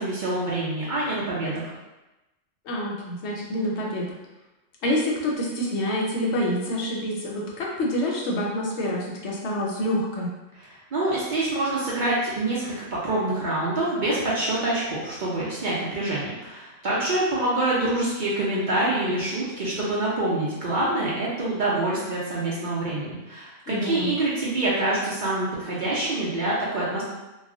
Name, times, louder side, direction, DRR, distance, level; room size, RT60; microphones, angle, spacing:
voice 1, 0.0-1.7 10.6-27.0, right 2 dB, 50° right, -7 dB, 0.6 m, -26 dB
voice 2, 2.6-4.1 4.8-10.3 23.7-24.1, equal, 70° left, -2 dB, 0.8 m, -27 dB
2.3 x 2.1 x 3.7 m, 1.0 s
omnidirectional pair, 1.3 m